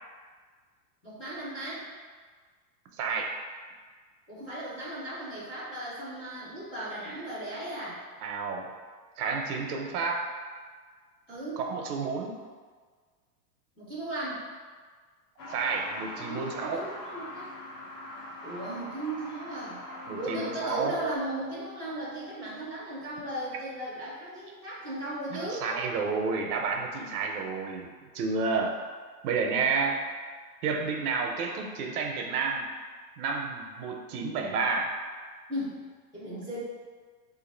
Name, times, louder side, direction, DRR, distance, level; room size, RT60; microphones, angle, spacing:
voice 1, 1.0-1.9 4.3-8.0 11.3-11.7 13.8-14.4 16.2-17.5 18.4-19.8 20.1-25.6 35.5-35.8 36.1-36.6, right 1 dB, 10° left, -12 dB, 0.5 m, -36 dB
voice 2, 3.0-3.3 8.2-8.7 9.2-10.3 11.6-12.4 15.5-16.8 20.1-21.0 25.3-27.9 28.1-28.7 29.2-30.0 30.6-32.6 33.2-34.9, right 4 dB, 65° right, 2 dB, 0.6 m, -30 dB
Truck, 15.4-21.2, left 1 dB, 85° left, 1.2 m, -42 dB
2.7 x 2.5 x 4.2 m, 1.5 s
supercardioid pair, 170°, 48 cm